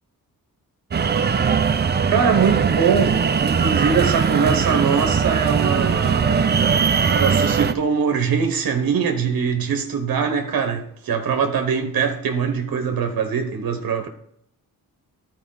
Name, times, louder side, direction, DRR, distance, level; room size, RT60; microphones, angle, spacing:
sound 1, 0.9-7.7, right 6 dB, 30° right, 0.4 m, -20 dB
voice 1, 2.1-6.5 7.1-14.1, right 6 dB, 85° right, 0.9 m, -22 dB
13.5 x 4.5 x 3.8 m
wide cardioid pair, 155°, 34 cm